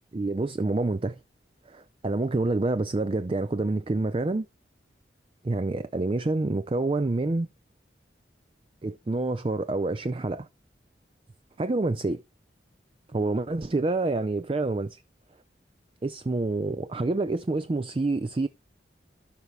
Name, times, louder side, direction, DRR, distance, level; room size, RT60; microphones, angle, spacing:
voice 1, 0.1-1.2 1.7-4.5 5.4-7.5 8.8-10.5 11.6-12.2 13.1-15.0 16.0-18.5, right 2 dB, 30° right, 0.4 m, -27 dB
12.5 x 5.4 x 3.3 m
head